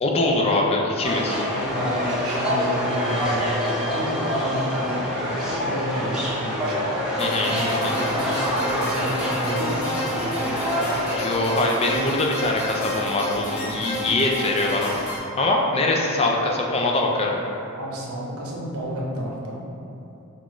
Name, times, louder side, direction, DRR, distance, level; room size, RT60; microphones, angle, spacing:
voice 1, 0.0-1.4 7.2-7.5 7.8-7.9 11.2-15.1 15.4-17.4, left 2 dB, 30° left, 0 dB, 0.4 m, -23 dB
sound 1, 1.0-11.2, equal, 5° right, 0.7 m, -26 dB
voice 2, 1.3-6.9 7.4-10.7 17.8-19.6, equal, 75° right, -3 dB, 0.8 m, -31 dB
sound 2, 7.2-15.2, left 1 dB, 70° left, 1.3 m, -30 dB
5.9 x 2.5 x 3.0 m, 2.7 s
head